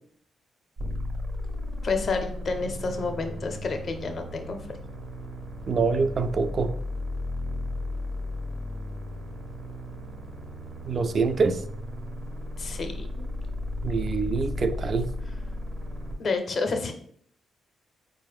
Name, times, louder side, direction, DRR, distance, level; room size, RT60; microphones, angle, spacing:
sound 1, 0.8-16.1, left 1 dB, 75° right, 0.8 m, -35 dB
voice 1, 1.8-4.6 12.6-13.2 16.2-16.9, left 4 dB, 55° left, 6 dB, 0.6 m, -29 dB
voice 2, 5.7-6.8 10.9-11.6 13.8-15.1, right 4 dB, 55° right, 10 dB, 0.3 m, -25 dB
4.3 x 2.1 x 3.4 m, 0.62 s
supercardioid pair, 55°, 0 cm